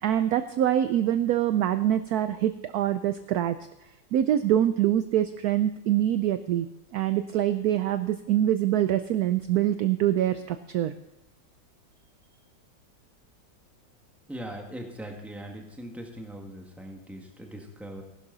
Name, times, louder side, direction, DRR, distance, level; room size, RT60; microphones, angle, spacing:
voice 1, 0.0-3.6 4.1-6.7 6.9-10.9, right 11 dB, 70° right, 11 dB, 0.9 m, -24 dB
voice 2, 14.3-18.0, right 1 dB, ahead, 2 dB, 1.5 m, -40 dB
15.5 x 11.5 x 3.9 m, 0.91 s
omnidirectional pair, 2.0 m